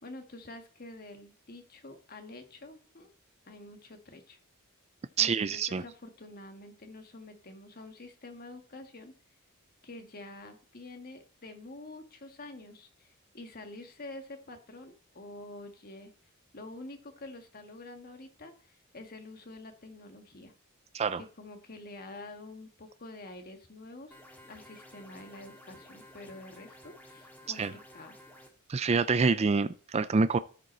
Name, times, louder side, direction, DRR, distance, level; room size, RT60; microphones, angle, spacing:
voice 1, 0.0-3.1 3.5-4.4 5.2-9.1 9.8-16.1 16.5-20.5 21.2-24.2 24.5-28.2, left 2 dB, 45° left, 1.5 m, -47 dB
voice 2, 5.2-5.8 20.9-21.2 27.6-27.7 28.7-30.4, right 4 dB, 30° right, 0.4 m, -26 dB
sound 1, 24.1-28.5, left 1 dB, 10° left, 1.8 m, -53 dB
13.5 x 5.2 x 4.3 m
head